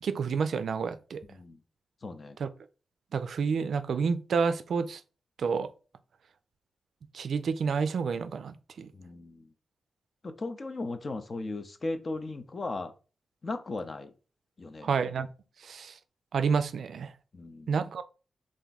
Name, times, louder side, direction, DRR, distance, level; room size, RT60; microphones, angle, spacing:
voice 1, 0.0-1.2 2.4-2.5 3.1-5.0 5.4-5.7 7.1-8.9 14.8-15.3 15.6-15.9 16.3-17.1 17.7-18.0, right 5 dB, 80° right, 0.3 m, -29 dB
voice 2, 1.2-1.6 2.0-2.4 8.9-9.5 10.2-12.9 13.4-14.1 14.6-14.9 17.3-17.7, left 2 dB, 40° left, 0.5 m, -37 dB
3.5 x 2.5 x 3.9 m
wide cardioid pair, 95°, 0 cm